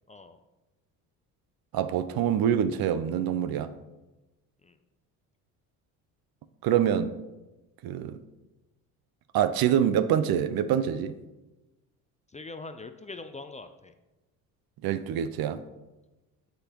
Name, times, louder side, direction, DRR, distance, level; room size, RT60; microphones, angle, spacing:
voice 1, 1.7-3.7 6.6-7.1 7.8-8.2 9.3-11.2 14.8-15.6, right 9 dB, 55° right, 0.6 m, -25 dB
voice 2, 12.3-13.9, left 3 dB, 15° left, 0.4 m, -42 dB
7.9 x 6.4 x 3.0 m
hypercardioid pair, 65°, 43 cm